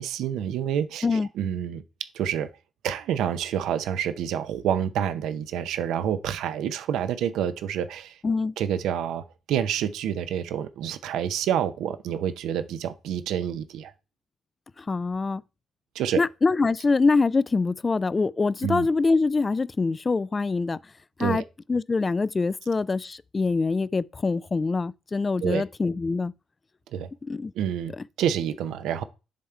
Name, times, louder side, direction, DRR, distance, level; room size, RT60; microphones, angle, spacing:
voice 1, 0.0-2.5 2.8-8.2 8.6-13.9 15.9-16.2 18.6-18.9 21.2-21.4 25.4-25.6 26.9-27.1 27.5-29.0, right 9 dB, 75° right, 0.6 m, -28 dB
voice 2, 8.2-8.5 14.8-15.4 16.2-20.8 21.2-21.4 21.7-26.3 27.3-27.5, left 4 dB, 35° left, 0.4 m, -24 dB
10.0 x 3.6 x 4.4 m
hypercardioid pair, 50°, 0 cm